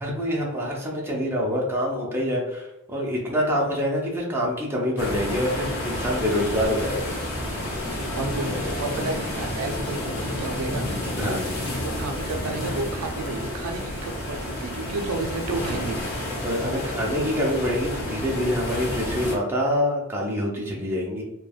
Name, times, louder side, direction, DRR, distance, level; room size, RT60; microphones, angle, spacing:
voice 1, 0.0-7.1 7.8-8.0 8.3-8.7 11.2-11.6 16.4-21.2, equal, 10° right, -3 dB, 0.5 m, -26 dB
sound 1, 5.0-19.4, left 1 dB, 70° left, 0.8 m, -30 dB
voice 2, 8.2-16.0, right 3 dB, 75° right, 4 dB, 0.4 m, -32 dB
3.1 x 2.1 x 2.3 m, 0.94 s
head